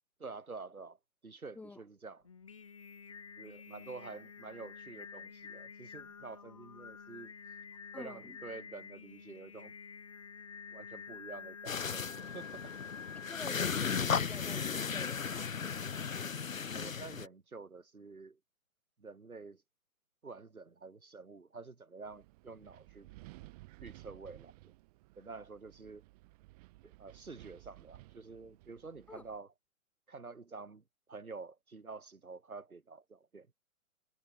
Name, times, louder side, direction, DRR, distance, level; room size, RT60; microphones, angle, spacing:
voice 1, 0.2-2.3 3.4-7.3 7.9-9.8 10.7-12.7 16.7-18.4 19.0-19.6 20.2-23.1 23.8-24.7 25.2-26.0 26.8-29.5 30.1-33.5, right 4 dB, 75° right, 6.8 m, -49 dB
Singing, 2.2-14.0, left 6 dB, 25° left, 0.5 m, -49 dB
voice 2, 7.9-8.4 13.3-15.8 29.1-29.2, left 3 dB, 5° left, 1.3 m, -48 dB
sound 1, 11.7-17.3, left 6 dB, 65° left, 1.9 m, -36 dB
Wind, 22.0-29.4, right 21 dB, 25° right, 4.1 m, -56 dB
figure-of-eight pair, 140°, 43 cm